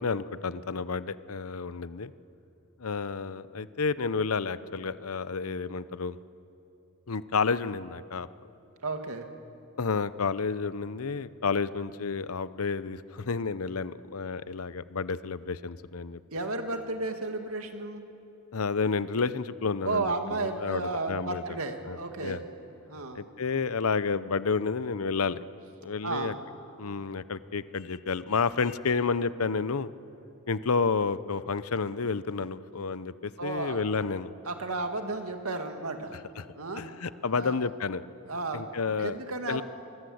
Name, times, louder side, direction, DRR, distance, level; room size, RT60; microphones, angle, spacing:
voice 1, 0.0-2.1 2.8-6.2 7.1-8.3 9.8-16.2 18.5-21.4 21.8-22.4 23.1-25.4 25.8-26.3 26.8-29.9 30.5-34.3 36.4-36.5 36.8-38.0 38.5-39.2 39.5-39.6, left 4 dB, 80° left, 15 dB, 0.8 m, -30 dB
voice 2, 8.8-9.3 16.3-18.0 19.8-22.4 22.9-23.2 26.0-26.4 33.4-33.8 34.5-36.2 36.6-36.8 37.4-37.6 38.3-38.7 39.0-39.6, right 3 dB, 85° right, 5 dB, 2.2 m, -33 dB
25.0 x 23.0 x 8.0 m, 2.8 s
head